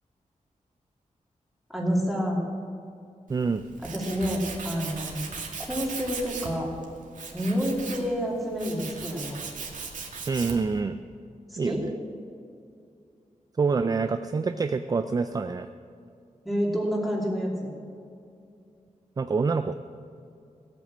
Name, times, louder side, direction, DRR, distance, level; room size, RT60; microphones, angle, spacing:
voice 1, 1.7-2.4 3.8-5.2 5.7-6.7 7.3-9.4 11.5-11.8 16.4-17.7, equal, ahead, -3 dB, 2.7 m, -28 dB
voice 2, 3.3-3.6 10.3-11.0 11.6-11.9 13.6-15.7 19.2-19.7, right 4 dB, 30° right, 9 dB, 0.4 m, -26 dB
Tools, 3.3-10.8, right 4 dB, 80° right, 2.0 m, -38 dB
16.0 x 8.7 x 7.5 m, 2.4 s
wide cardioid pair, 165°, 13 cm